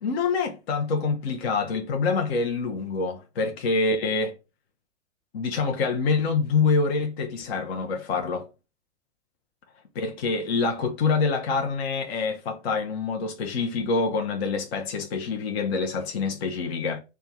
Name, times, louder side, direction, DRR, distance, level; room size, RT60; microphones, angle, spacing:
voice 1, 0.0-4.3 5.3-8.5 9.9-17.0, left 4 dB, 60° left, 0.8 m, -26 dB
3.4 x 2.4 x 4.1 m
hypercardioid pair, 110°, 35 cm